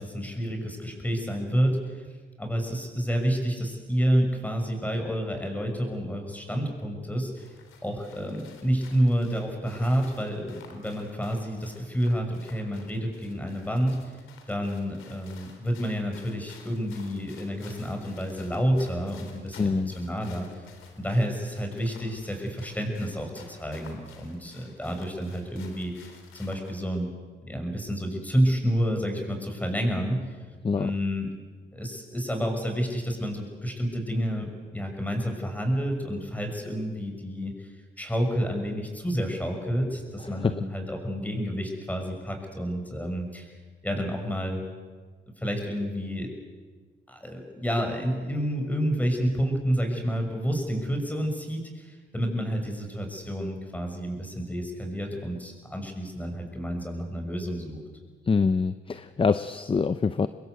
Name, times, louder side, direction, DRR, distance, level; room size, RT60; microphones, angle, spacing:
voice 1, 0.0-2.1 2.4-7.5 7.8-14.1 14.5-20.7 21.0-27.1 27.5-30.4 30.8-31.3 31.7-37.7 38.0-43.5 43.8-44.6 45.4-46.3 47.1-57.8, equal, 10° left, 3 dB, 6.5 m, -29 dB
sound 1, 7.4-26.8, left 6 dB, 85° left, 3.6 m, -53 dB
voice 2, 19.6-19.9 30.6-30.9 40.4-40.6 58.2-60.3, left 5 dB, 25° left, 13 dB, 0.7 m, -25 dB
25.5 x 21.0 x 8.1 m, 1.5 s
cardioid pair, 90°, 20 cm